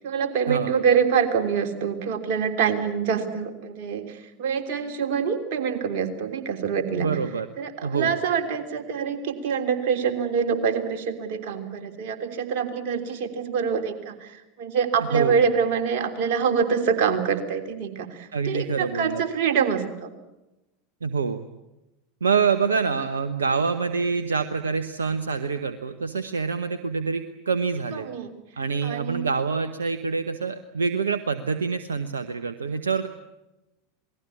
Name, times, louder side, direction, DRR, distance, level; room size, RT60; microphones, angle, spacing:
voice 1, 0.0-7.1 7.6-20.1 27.9-28.3 28.8-29.3, right 6 dB, 55° right, 4 dB, 3.2 m, -25 dB
voice 2, 6.9-7.5 7.8-8.2 15.1-15.4 18.3-19.2 21.0-21.4 22.2-28.1 28.6-33.1, right 5 dB, 80° right, 10 dB, 1.0 m, -26 dB
28.0 x 19.5 x 8.5 m, 0.97 s
figure-of-eight pair, 85°, 0 cm